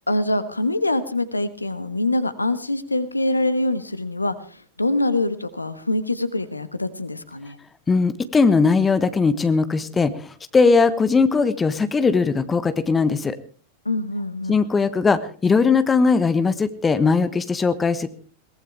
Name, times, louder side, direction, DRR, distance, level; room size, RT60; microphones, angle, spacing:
voice 1, 0.1-7.6 13.8-14.6, left 2 dB, 80° left, 14 dB, 1.3 m, -24 dB
voice 2, 7.9-10.1 10.5-13.4 14.5-18.1, left 4 dB, 15° left, 12 dB, 1.2 m, -19 dB
22.5 x 18.5 x 3.4 m, 0.39 s
figure-of-eight pair, 90°, 0 cm